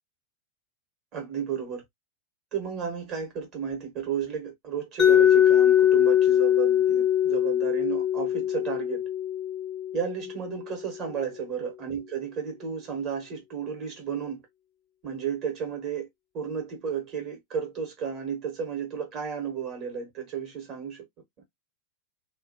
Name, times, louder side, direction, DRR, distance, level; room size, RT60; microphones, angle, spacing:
voice 1, 1.1-1.8 2.5-9.0 9.9-14.4 15.0-16.1 16.3-21.0, right 7 dB, 35° right, 1.4 m, -33 dB
Mallet percussion, 5.0-10.8, left 10 dB, 20° left, 0.5 m, -22 dB
2.7 x 2.4 x 2.8 m
figure-of-eight pair, 90°, 0 cm